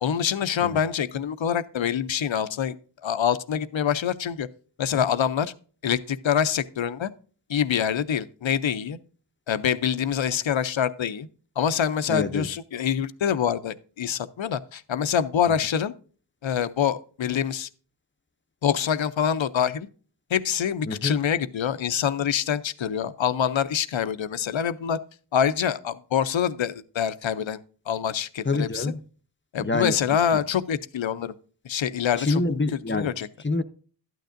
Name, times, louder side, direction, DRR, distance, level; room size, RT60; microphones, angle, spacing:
voice 1, 0.0-2.8 3.0-4.5 4.8-5.5 5.8-7.1 7.5-9.0 9.5-11.3 11.6-15.9 16.4-17.7 18.6-19.9 20.3-25.0 25.3-27.6 27.9-28.9 29.5-31.3 31.6-32.4 32.9-33.3, left 8 dB, 85° left, 0.6 m, -25 dB
voice 2, 12.1-12.5 15.5-15.6 20.9-21.2 28.4-29.0 29.6-30.0 30.3-30.4 32.2-33.1 33.4-33.6, left 3 dB, 25° left, 0.6 m, -26 dB
12.0 x 9.2 x 2.5 m
wide cardioid pair, 50°, 45 cm